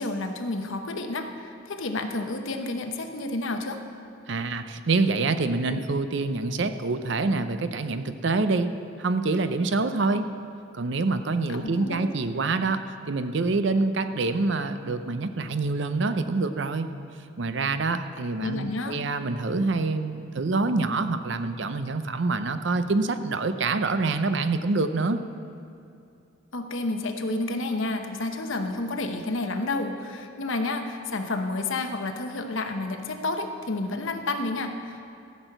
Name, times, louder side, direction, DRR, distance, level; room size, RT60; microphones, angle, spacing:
voice 1, 0.0-3.8 11.5-12.1 18.4-19.0 26.5-35.1, left 2 dB, 75° left, 6 dB, 0.9 m, -30 dB
voice 2, 4.3-8.7 9.0-10.3 10.7-16.9 17.4-25.2, right 3 dB, 60° right, 10 dB, 0.6 m, -26 dB
14.0 x 6.3 x 7.9 m, 2.6 s
head